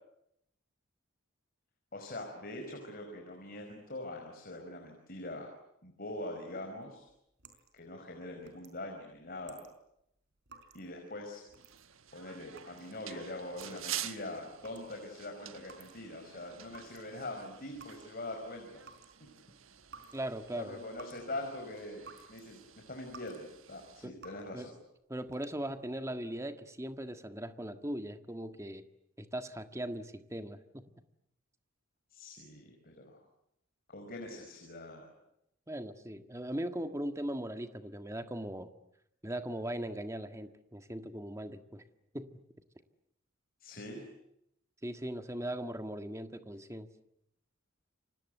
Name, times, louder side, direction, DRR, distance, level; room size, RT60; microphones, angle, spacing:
voice 1, 1.9-5.5 5.8-7.1 7.7-9.6 10.7-11.4 12.1-18.7 19.2-19.3 20.6-22.0 22.3-22.6 22.9-24.7 32.1-33.2 33.9-35.1 43.6-44.0, left 1 dB, 45° left, 3 dB, 5.1 m, -43 dB
sound 1, 6.8-16.3 16.5-22.5 22.8-23.5 23.8-24.6 25.1-25.8, right 5 dB, 55° right, 5.0 m, -57 dB
sound 2, 11.6-24.1, right 11 dB, 80° right, 1.4 m, -48 dB
voice 2, 20.1-20.8 24.0-24.1 24.5-24.7 25.1-28.9 29.2-30.8 35.7-38.7 39.2-41.8 42.1-42.4 44.8-46.9, right 1 dB, 15° right, 8 dB, 1.6 m, -39 dB
29.5 x 25.0 x 8.1 m, 0.79 s
head